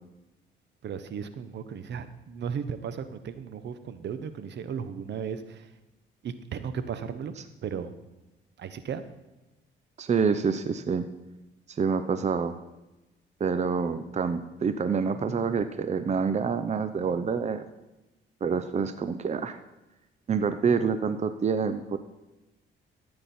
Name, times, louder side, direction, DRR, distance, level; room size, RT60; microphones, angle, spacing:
voice 1, 0.8-5.7 6.2-7.4 7.6-7.9 8.6-9.0, right 7 dB, 60° right, 11 dB, 1.0 m, -35 dB
voice 2, 10.0-11.0 11.8-12.6 13.4-17.6 18.4-19.6 20.3-22.0, right 5 dB, 35° right, 10 dB, 0.7 m, -27 dB
14.0 x 8.8 x 4.3 m, 1.0 s
cardioid pair, 90°, 20 cm